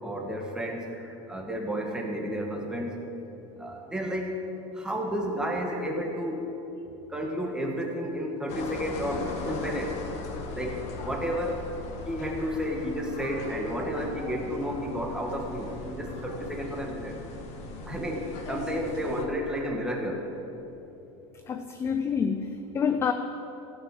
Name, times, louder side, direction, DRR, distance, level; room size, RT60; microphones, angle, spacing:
voice 1, 0.0-2.9 3.6-4.4 4.7-6.4 7.1-10.0 10.5-11.7 12.0-17.2 17.9-20.2, equal, 5° right, 1 dB, 1.4 m, -32 dB
sound 1, 8.5-19.2, left 3 dB, 45° left, 1.5 m, -38 dB
voice 2, 21.5-23.1, left 6 dB, 15° left, 7 dB, 0.4 m, -27 dB
15.0 x 6.0 x 7.5 m, 3.0 s
supercardioid pair, 150°, 15 cm